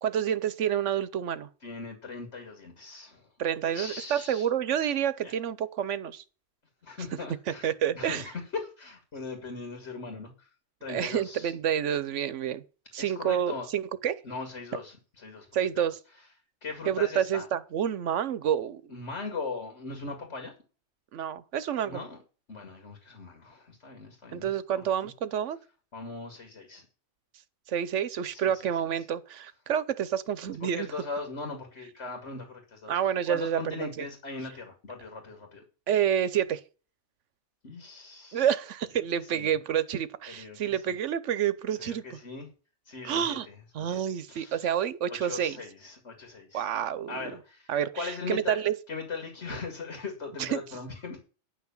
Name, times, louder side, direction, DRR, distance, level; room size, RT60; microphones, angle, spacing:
voice 1, 0.0-1.5 3.4-6.2 7.6-8.2 10.9-12.6 12.9-14.2 15.5-16.0 16.9-18.8 21.1-22.0 24.3-25.6 27.7-30.9 32.9-34.1 35.9-36.6 38.3-42.2 43.0-43.5 43.7-45.6 46.5-47.3 47.7-48.8 50.4-50.6, right 9 dB, 85° right, 1.1 m, -29 dB
voice 2, 1.6-3.3 3.6-4.5 5.2-5.3 6.8-10.5 10.8-11.5 13.0-13.7 14.2-15.5 15.7-15.9 16.6-17.5 18.9-20.5 21.8-22.2 22.5-25.1 25.9-26.9 28.3-28.7 29.0-29.1 30.6-33.0 33.3-35.6 37.6-38.5 39.1-39.5 40.3-41.0 41.7-42.5 42.9-44.0 44.3-44.8 45.1-46.7 47.1-48.6 48.9-51.2, left 4 dB, 70° left, 2.5 m, -39 dB
10.0 x 5.9 x 7.1 m
omnidirectional pair, 1.2 m